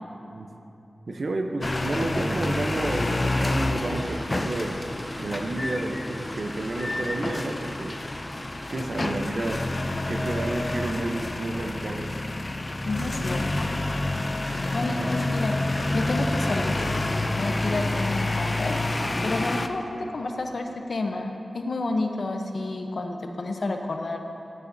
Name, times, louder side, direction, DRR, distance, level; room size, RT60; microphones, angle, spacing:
voice 1, 1.1-4.8 5.2-8.0 8.7-9.6 10.1-12.2 14.8-15.1, right 2 dB, 65° right, 4 dB, 0.7 m, -31 dB
sound 1, 1.6-19.7, left 2 dB, 35° left, 0.4 m, -28 dB
sound 2, 3.7-9.3 9.5-9.8 10.2-10.3 10.6-10.8 11.2-11.4 11.6-11.7 12.3-12.4 12.7-12.8 13.4-13.7 13.9-14.0 14.4-14.7 15.0-15.1 15.5-15.6 16.2-16.5 16.9-17.2 17.5-17.6 18.1-18.2 18.9-19.1 19.5-20.0 20.4-20.5, equal, ahead, 1.2 m, -41 dB
voice 2, 12.9-13.4 14.7-15.6 15.9-16.9 17.3-18.7 19.2-24.2, left 2 dB, 65° left, 4 dB, 0.7 m, -30 dB
sound 3, 14.4-20.5, right 1 dB, 40° right, 1.0 m, -43 dB
11.5 x 9.8 x 2.7 m, 2.8 s
wide cardioid pair, 85°, 0 cm